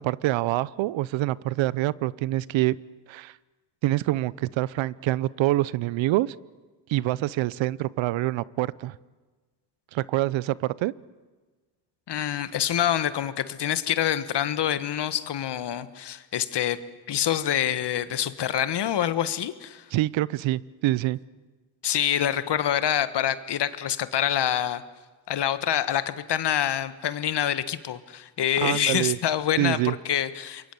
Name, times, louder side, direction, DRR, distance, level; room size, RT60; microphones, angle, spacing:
voice 1, 0.0-2.8 3.1-3.3 3.8-6.3 6.9-8.9 9.9-10.9 19.9-21.2 28.6-29.2 29.6-29.9, right 16 dB, 80° right, 21 dB, 0.8 m, -26 dB
voice 2, 12.1-16.8 17.1-19.8 21.8-24.8 25.3-30.7, left 10 dB, 60° left, 13 dB, 1.6 m, -26 dB
28.0 x 22.5 x 8.1 m, 1.3 s
supercardioid pair, 65°, 45 cm